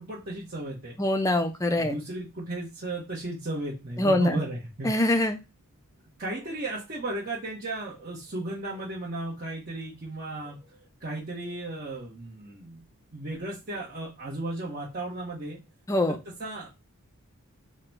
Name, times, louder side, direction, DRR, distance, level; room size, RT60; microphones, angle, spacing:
voice 1, 0.0-1.0 1.8-4.9 6.2-12.8 13.1-15.6 16.1-16.7, right 2 dB, 40° right, -6 dB, 0.9 m, -35 dB
voice 2, 1.0-1.9 4.0-4.4 4.8-5.4 15.9-16.2, left 1 dB, 15° left, 7 dB, 0.4 m, -23 dB
3.8 x 2.1 x 4.4 m, 0.26 s
head